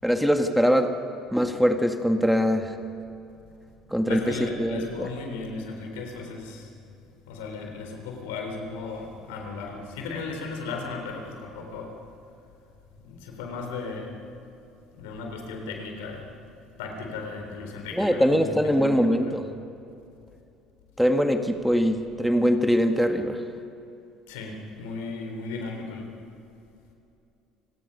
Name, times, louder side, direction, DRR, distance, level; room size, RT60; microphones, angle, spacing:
voice 1, 0.0-0.9 1.3-2.8 3.9-5.1 17.9-19.4 21.0-23.4, equal, ahead, 6 dB, 1.8 m, -22 dB
voice 2, 4.1-6.7 7.3-11.9 13.0-14.1 15.0-16.3 16.8-19.4 24.3-26.1, left 4 dB, 80° left, 3 dB, 3.7 m, -36 dB
29.0 x 18.0 x 5.5 m, 2.7 s
hypercardioid pair, 65°, 0 cm